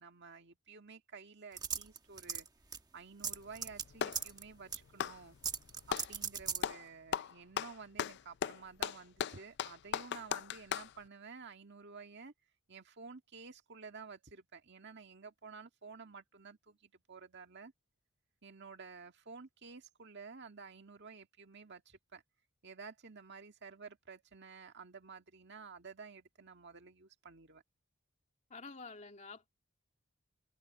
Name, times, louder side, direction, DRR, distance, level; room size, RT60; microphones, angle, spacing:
voice 1, 0.0-2.5 2.9-5.4 5.9-12.3 12.7-17.7 18.4-22.2 22.6-27.6, right 5 dB, 55° right, 1.9 m, -52 dB
sound 1, 1.6-2.5 2.7-2.8 3.2-3.8 4.1-4.4 4.7-4.8 5.4-6.6, right 6 dB, 20° right, 1.1 m, -37 dB
Clapping, 3.3-4.3 4.9-6.1 6.6-6.8 7.1-10.9, left 8 dB, 55° left, 0.4 m, -37 dB
voice 2, 28.5-29.5, left 4 dB, 35° left, 2.4 m, -49 dB
head